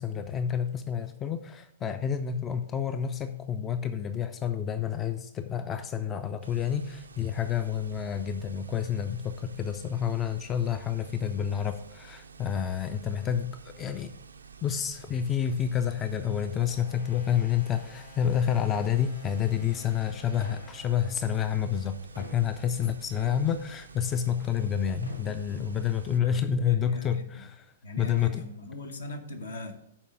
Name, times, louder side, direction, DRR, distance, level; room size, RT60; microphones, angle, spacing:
voice 1, 0.0-14.1 14.6-28.4, left 8 dB, 20° left, 10 dB, 0.4 m, -29 dB
sound 1, 6.4-26.2, right 6 dB, 70° right, 0.4 m, -50 dB
sound 2, 15.2-22.3, left 3 dB, 50° left, 3.1 m, -54 dB
sound 3, 20.4-21.4 21.9-24.7 25.0-26.1 26.7-26.8 27.9-28.9, equal, 90° left, 1.1 m, -51 dB
voice 2, 26.2-27.2 27.8-29.7, left 1 dB, 65° left, 6 dB, 1.1 m, -41 dB
7.2 x 4.7 x 6.5 m, 0.73 s
figure-of-eight pair, 105°, 0 cm